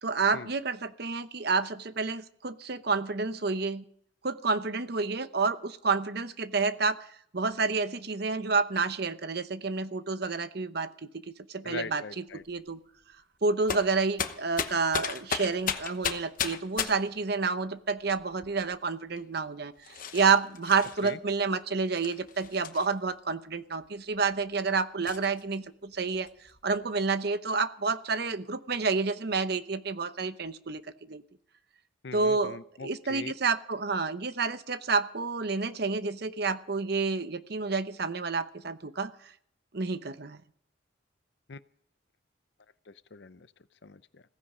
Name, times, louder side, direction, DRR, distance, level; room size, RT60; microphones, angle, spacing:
voice 1, 0.0-3.8 4.2-7.0 7.3-10.9 11.5-12.8 13.4-26.3 26.6-31.2 32.1-39.1 39.7-40.4, right 4 dB, 55° right, 12 dB, 0.9 m, -29 dB
voice 2, 11.6-12.4 21.0-21.2 32.0-33.3 41.5-41.6 42.9-43.5 43.8-44.2, left 4 dB, 60° left, 15 dB, 0.6 m, -41 dB
sound 1, 12.4-12.7 13.7-17.2 18.0-18.7 19.2-19.3 19.8-21.1 21.9-23.1 23.8-23.9 24.3-24.4 25.1-25.5 25.9-26.8, left 7 dB, 45° left, 1.0 m, -35 dB
16.5 x 15.5 x 5.0 m, 0.65 s
head